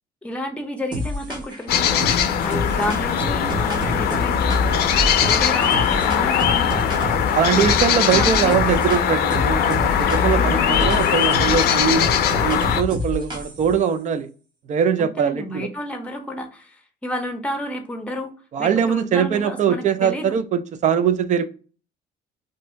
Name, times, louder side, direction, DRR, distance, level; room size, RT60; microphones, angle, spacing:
voice 1, 0.2-4.7 5.2-7.1 7.5-8.6 10.4-11.0 15.0-18.3 18.6-20.4, left 1 dB, 5° left, 0.7 m, -31 dB
sound 1, 0.9-1.6 2.0-7.3 7.6-9.0 9.3-13.7, left 1 dB, 25° right, 1.0 m, -27 dB
sound 2, 1.7-12.8, left 8 dB, 70° left, 0.5 m, -20 dB
voice 2, 7.3-12.1 12.4-14.3 14.7-15.7 18.5-21.5, right 7 dB, 45° right, 0.5 m, -21 dB
2.7 x 2.6 x 3.2 m
cardioid pair, 110°, 17 cm